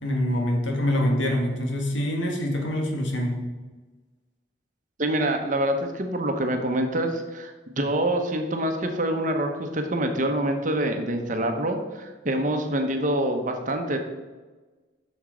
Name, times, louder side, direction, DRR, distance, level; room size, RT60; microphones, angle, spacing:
voice 1, 0.0-3.4, left 1 dB, 80° left, 1 dB, 1.7 m, -25 dB
voice 2, 5.0-14.0, right 1 dB, 40° right, 5 dB, 1.0 m, -26 dB
7.2 x 6.4 x 5.0 m, 1.3 s
head